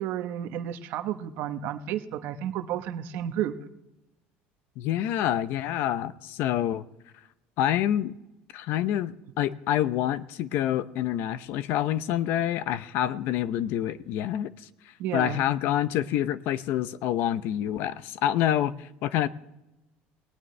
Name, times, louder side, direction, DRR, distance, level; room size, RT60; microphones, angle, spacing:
voice 1, 0.0-3.5 15.0-15.4, right 10 dB, 60° right, 1.1 m, -32 dB
voice 2, 4.8-6.8 7.6-8.2 8.5-14.5 15.1-19.3, left 11 dB, 60° left, 0.7 m, -27 dB
18.5 x 18.5 x 3.3 m
cardioid pair, 160°, 4 cm